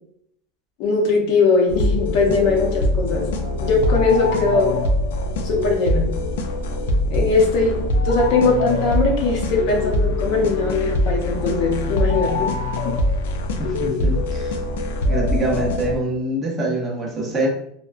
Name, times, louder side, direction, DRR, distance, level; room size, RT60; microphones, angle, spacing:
voice 1, 0.8-3.3 3.6-4.8 5.4-6.1 7.1-12.5 12.8-12.9, left 3 dB, 50° left, 1 dB, 0.7 m, -20 dB
sound 1, 1.7-16.0, left 2 dB, 80° left, 0.4 m, -23 dB
voice 2, 13.6-14.5 15.1-17.5, right 1 dB, 15° right, -2 dB, 0.6 m, -24 dB
2.7 x 2.1 x 2.4 m, 0.71 s
supercardioid pair, 155°, 0 cm